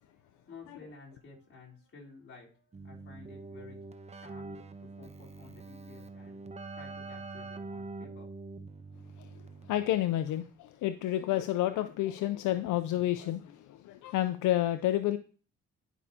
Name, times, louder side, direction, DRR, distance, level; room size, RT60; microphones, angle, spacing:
voice 1, 0.0-8.7, left 4 dB, 45° left, 3.8 m, -53 dB
Keyboard (musical), 2.7-10.0, right 3 dB, 20° right, 0.8 m, -45 dB
voice 2, 9.7-15.2, left 13 dB, 80° left, 0.6 m, -30 dB
11.0 x 5.5 x 2.8 m
cardioid pair, 90°, 30 cm